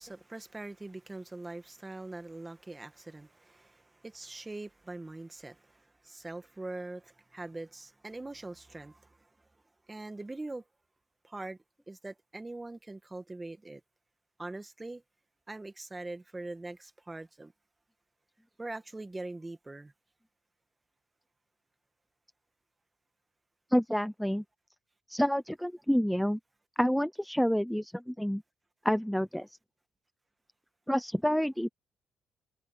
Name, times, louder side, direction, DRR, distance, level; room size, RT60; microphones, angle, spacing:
voice 1, 0.0-9.3 9.9-10.6 11.2-11.6 11.9-13.8 14.4-15.0 15.5-17.5 18.6-19.9, right 2 dB, 15° right, 1.8 m, -42 dB
voice 2, 23.7-24.4 25.1-26.4 26.8-28.4 28.8-29.6 30.9-31.7, equal, ahead, 0.6 m, -28 dB
cardioid pair, 90°, 0 cm